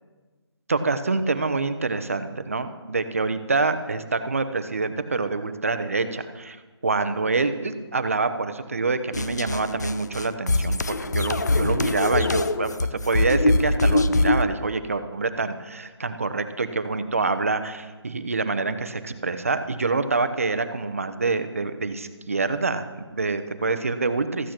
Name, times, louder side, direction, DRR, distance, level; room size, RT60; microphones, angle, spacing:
voice 1, 0.7-6.6 6.8-24.5, right 3 dB, 30° right, 10 dB, 0.6 m, -26 dB
sound 1, 9.1-14.5, left 2 dB, 40° left, 0.5 m, -23 dB
14.0 x 8.9 x 5.9 m, 1.3 s
hypercardioid pair, 180°, 14 cm